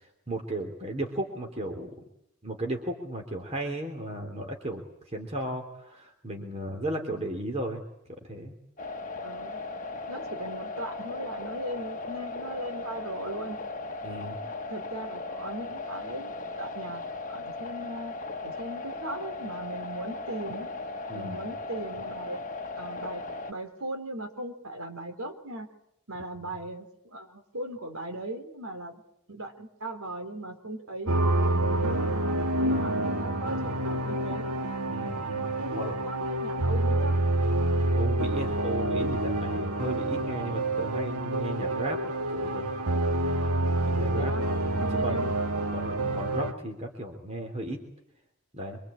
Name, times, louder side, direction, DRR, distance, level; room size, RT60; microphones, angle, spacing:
voice 1, 0.0-1.9 2.4-4.8 5.1-7.8 8.2-8.5 14.0-14.4 21.1-21.4 26.4-26.5 31.5-32.1 32.5-32.9 34.9-35.9 37.9-42.7 43.8-44.3 44.7-45.4 45.7-47.8 48.5-48.8, right 1 dB, 30° right, 2 dB, 3.4 m, -35 dB
sound 1, 8.8-23.5, left 3 dB, 35° left, 1.4 m, -37 dB
voice 2, 9.2-9.6 10.1-13.6 14.7-16.3 16.6-17.0 17.3-18.1 18.4-20.7 21.1-22.5 22.8-23.2 23.5-25.7 26.1-29.0 29.3-31.1 32.6-34.5 35.6-37.2 44.1-44.5 44.8-45.3, right 1 dB, 75° right, 6 dB, 3.9 m, -38 dB
sound 2, 31.1-46.5, right 1 dB, 90° right, 2.0 m, -27 dB
25.5 x 25.5 x 8.8 m, 0.80 s
head